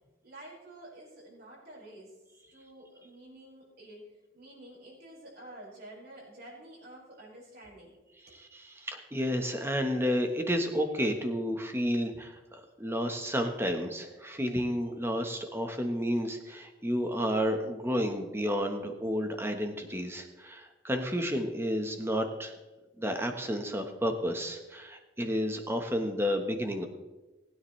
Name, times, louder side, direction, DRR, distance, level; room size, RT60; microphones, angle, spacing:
voice 1, 0.2-2.2 2.5-8.0 8.3-8.4, right 1 dB, 50° right, -4 dB, 5.1 m, -50 dB
voice 2, 8.4-22.5 23.0-26.9, equal, 10° right, 5 dB, 1.2 m, -31 dB
20.0 x 9.7 x 3.2 m, 1.2 s
head